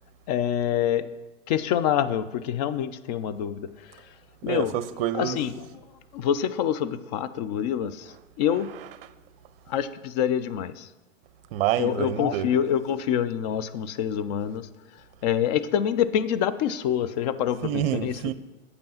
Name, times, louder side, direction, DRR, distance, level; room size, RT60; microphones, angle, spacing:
voice 1, 0.3-1.1 1.5-3.7 4.4-4.7 5.1-5.5 6.1-7.9 8.4-8.7 9.7-10.7 11.8-14.6 15.2-18.2, left 9 dB, 35° left, 0.4 m, -26 dB
voice 2, 4.5-5.4 8.7-8.9 11.5-12.5 17.6-18.3, right 12 dB, 45° right, 0.7 m, -27 dB
8.2 x 5.3 x 5.7 m
hypercardioid pair, 110°, 39 cm